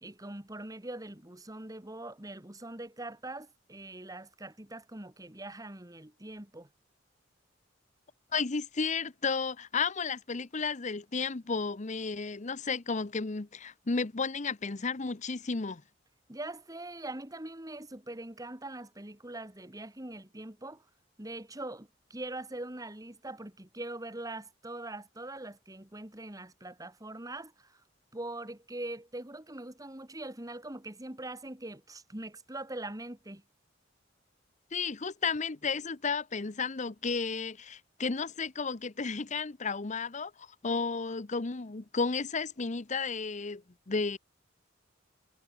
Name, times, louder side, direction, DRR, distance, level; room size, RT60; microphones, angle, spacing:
voice 1, 0.0-6.7 16.3-20.8 21.2-27.8 28.1-33.4, right 2 dB, 20° right, 2.2 m, -42 dB
voice 2, 8.3-15.8 34.7-44.2, left 4 dB, 40° left, 0.8 m, -33 dB
head